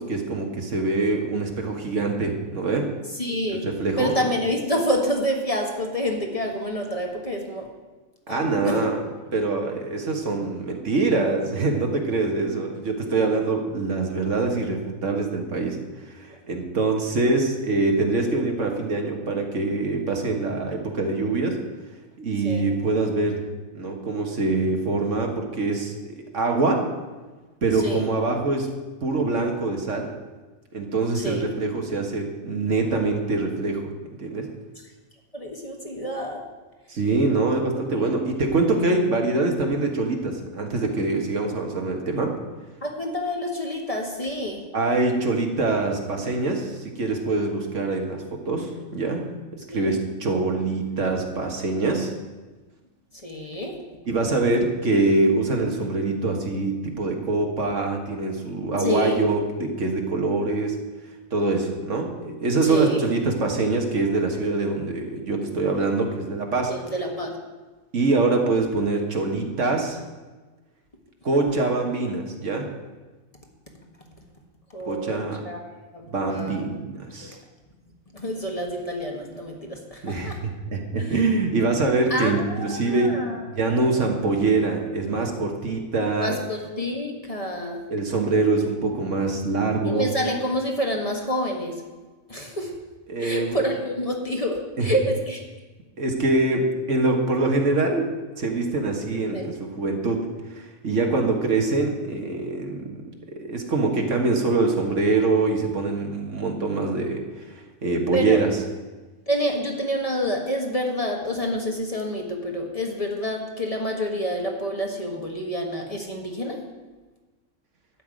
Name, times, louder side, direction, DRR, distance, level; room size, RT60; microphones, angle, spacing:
voice 1, 0.0-2.9 3.6-4.3 8.3-9.0 9.3-21.6 22.2-23.4 23.7-26.9 27.6-28.7 29.0-30.1 30.7-33.9 34.2-34.5 36.9-42.3 44.7-52.1 54.1-60.8 61.3-66.7 67.9-70.0 71.2-72.7 74.9-75.4 76.1-77.4 80.0-83.2 83.6-86.4 87.9-90.1 93.1-93.6 94.8-94.9 96.0-98.1 98.4-103.1 103.4-107.6 107.8-108.6, right 3 dB, 65° right, 3 dB, 1.9 m, -24 dB
voice 2, 3.1-3.7 4.0-7.7 8.3-8.9 22.4-22.6 27.7-28.1 31.1-31.5 35.3-36.4 37.9-38.1 42.8-44.6 49.7-50.0 53.1-53.8 58.8-59.2 62.6-63.0 66.7-67.3 74.7-76.7 77.2-77.3 78.1-80.4 81.0-81.2 82.1-83.4 83.7-84.0 86.2-87.8 89.8-91.8 92.3-92.8 93.2-95.4 99.3-99.5 108.1-108.4 109.3-116.6, equal, 25° left, 1 dB, 1.6 m, -28 dB
12.5 x 5.8 x 9.2 m, 1.2 s
omnidirectional pair, 1.4 m